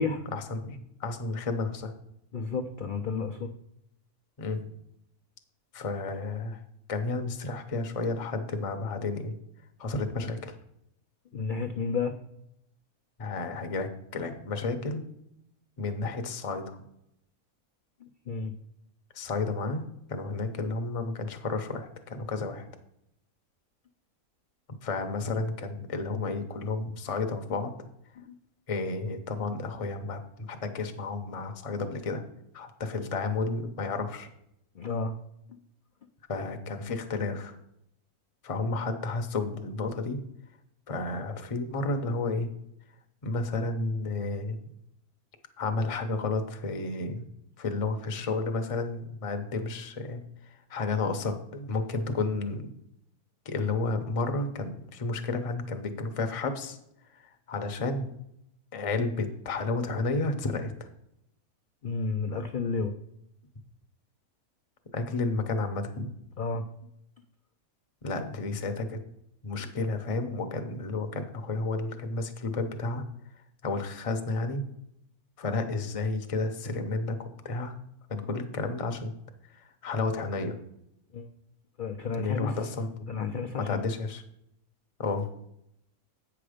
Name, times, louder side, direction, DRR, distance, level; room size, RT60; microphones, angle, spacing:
voice 1, 0.3-1.9 4.4-4.7 5.7-6.6 6.9-9.3 9.8-10.6 13.2-15.0 15.8-16.8 19.1-22.7 24.8-27.7 28.7-32.2 32.5-34.3 36.3-37.6 38.4-40.2 40.9-42.5 43.2-44.6 45.6-47.3 47.6-52.7 53.4-56.8 57.2-58.1 58.7-60.7 64.9-66.1 68.0-69.0 69.4-73.0 73.6-74.6 75.4-77.8 78.1-79.1 79.5-80.6 82.2-83.1 83.6-84.2 85.0-85.3, left 3 dB, 35° left, 6 dB, 0.6 m, -31 dB
voice 2, 2.3-3.5 11.3-12.1 18.0-18.5 28.2-28.3 34.7-35.1 35.5-35.6 61.8-63.0 66.4-66.6 81.1-81.3 81.8-82.6 83.1-83.9, left 4 dB, 85° left, 5 dB, 0.4 m, -31 dB
8.6 x 5.9 x 5.0 m, 0.79 s
omnidirectional pair, 1.6 m